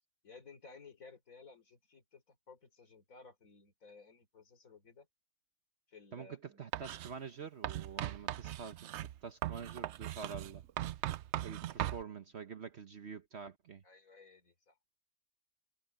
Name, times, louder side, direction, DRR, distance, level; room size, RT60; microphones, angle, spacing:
voice 1, 0.2-5.1 5.9-6.7 13.8-14.8, left 4 dB, 60° left, 3.9 m, -57 dB
voice 2, 6.1-10.6 11.4-13.8, right 6 dB, 50° right, 1.1 m, -47 dB
Writing, 6.7-7.1 7.6-12.0, right 13 dB, 75° right, 0.6 m, -39 dB
omnidirectional pair, 1.7 m